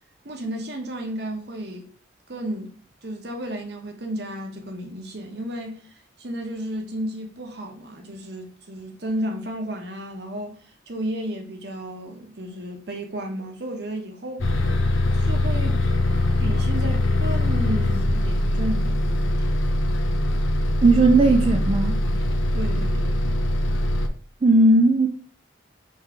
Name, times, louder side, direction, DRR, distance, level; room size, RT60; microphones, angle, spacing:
voice 1, 0.2-1.9 2.3-2.7 3.0-5.8 6.2-10.6 10.9-14.5 15.2-15.8 16.4-19.5 22.5-23.2, right 1 dB, 55° right, 1.0 m, -33 dB
Bus, 14.4-24.1, left 1 dB, 80° left, 0.6 m, -22 dB
voice 2, 20.8-22.0 24.4-25.1, right 2 dB, 30° right, 0.3 m, -16 dB
3.6 x 3.2 x 4.6 m
head